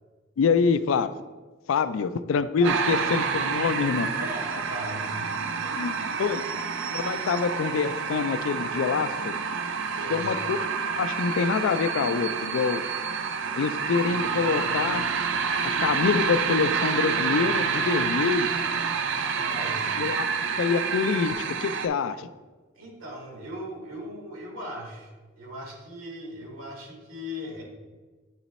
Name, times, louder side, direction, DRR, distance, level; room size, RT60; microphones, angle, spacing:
voice 1, 0.4-1.1 1.7-4.1 5.8-5.9 6.2-6.4 6.9-9.3 10.1-10.6 11.0-12.9 13.6-15.1 15.8-18.5 20.0-20.2 20.6-21.3 21.6-22.3, left 5 dB, 70° left, 13 dB, 0.3 m, -25 dB
sound 1, 2.6-21.9, right 5 dB, 65° right, 0.4 m, -28 dB
voice 2, 4.0-5.4 5.6-6.3 9.9-10.3 19.2-20.0 22.7-25.1 25.3-27.6, equal, 90° right, -1 dB, 1.8 m, -39 dB
8.9 x 3.0 x 4.1 m, 1.3 s
head